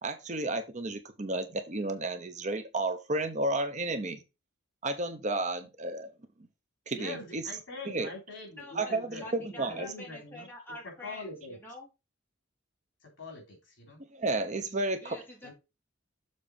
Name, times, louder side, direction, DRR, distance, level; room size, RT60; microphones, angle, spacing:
voice 1, 0.0-4.2 4.8-6.1 6.9-7.4 7.9-8.1 8.8-9.9 14.1-15.2, right 2 dB, 35° right, 0.8 m, -32 dB
voice 2, 6.9-10.5 10.8-11.6 13.0-14.0 15.4-15.5, left 2 dB, 65° left, 3.5 m, -43 dB
voice 3, 8.6-11.9 15.0-15.5, left 2 dB, 10° left, 3.0 m, -46 dB
7.0 x 3.9 x 5.2 m
head